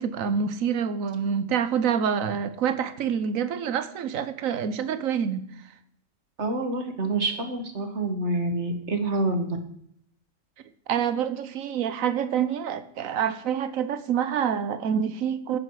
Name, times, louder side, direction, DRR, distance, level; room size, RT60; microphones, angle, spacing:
voice 1, 0.0-5.4 10.9-15.6, right 7 dB, 80° right, 1.3 m, -27 dB
voice 2, 6.4-9.6, right 2 dB, 55° right, 2.0 m, -27 dB
16.0 x 9.9 x 4.8 m
omnidirectional pair, 1.4 m